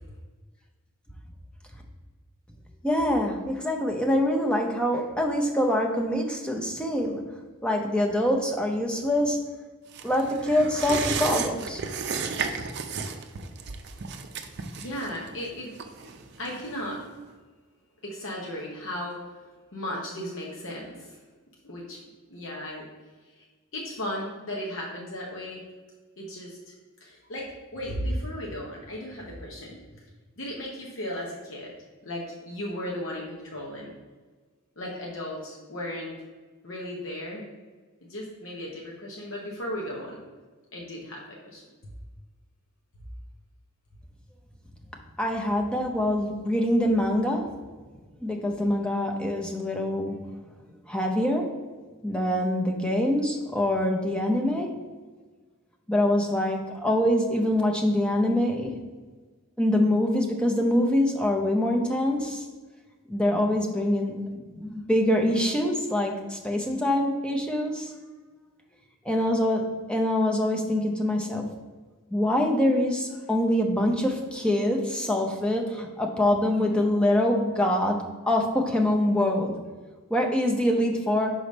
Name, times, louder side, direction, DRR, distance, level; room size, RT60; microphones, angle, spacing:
voice 1, 2.8-7.2 7.6-9.4 10.0-11.8 45.2-47.4 48.2-50.1 50.9-51.5 52.0-54.7 55.9-58.7 59.6-62.4 63.1-67.9 69.0-69.6 69.9-71.5 72.1-78.0 78.3-79.5 80.1-81.3, left 1 dB, 5° left, 1 dB, 0.7 m, -24 dB
sound 1, 9.9-17.0 17.3-17.4, right 5 dB, 50° right, 0.5 m, -34 dB
voice 2, 14.8-15.7 16.4-17.0 18.0-19.3 19.7-21.2 21.6-22.0 22.3-22.9 23.4-23.5 23.7-25.6 26.2-26.7 27.0-30.0 30.4-31.7 32.0-33.9 34.8-36.2 36.6-37.5 38.1-40.2 40.7-41.6, left 1 dB, 65° left, -3 dB, 1.0 m, -35 dB
5.0 x 3.9 x 5.3 m, 1.4 s
head